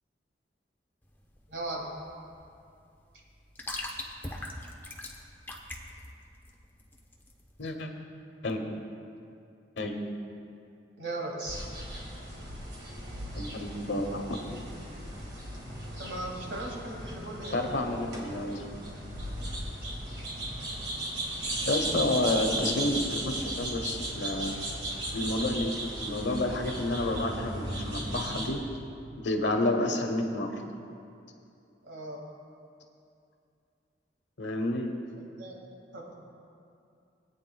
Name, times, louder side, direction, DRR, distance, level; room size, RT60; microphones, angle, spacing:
sound 1, 1.0-7.7, left 1 dB, 10° left, 0.7 m, -42 dB
voice 1, 1.5-1.9 11.0-11.6 16.0-17.6 22.3-22.7 31.8-32.2 35.4-35.6 35.9-36.1, right 2 dB, 85° right, -2 dB, 2.1 m, -38 dB
sound 2, 11.5-28.5, right 1 dB, 65° right, 2.3 m, -36 dB
voice 2, 13.4-14.4 17.5-18.6 21.6-24.6 25.1-25.7 26.0-28.6 29.2-30.5 34.4-34.9, left 2 dB, 85° left, 4 dB, 1.0 m, -30 dB
20.5 x 8.8 x 2.3 m, 2.5 s
head